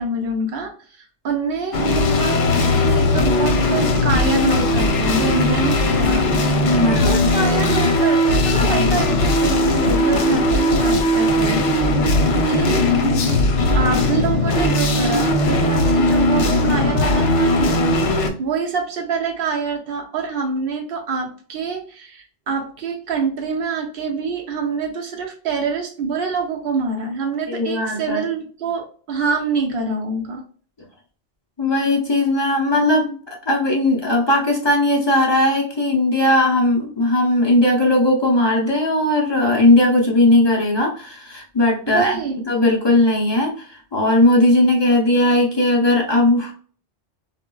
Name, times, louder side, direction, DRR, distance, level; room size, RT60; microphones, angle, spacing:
voice 1, 0.0-6.6 6.9-11.7 12.1-12.8 13.7-30.4 41.9-42.4, right 4 dB, 60° right, 2 dB, 0.9 m, -25 dB
sound 1, 1.7-18.3, left 1 dB, 85° left, 0.9 m, -18 dB
voice 2, 6.6-7.3 8.5-8.9 27.5-28.2 31.6-42.2 42.5-46.5, left 1 dB, 35° left, -2 dB, 0.4 m, -18 dB
4.1 x 2.1 x 2.2 m, 0.42 s
omnidirectional pair, 1.2 m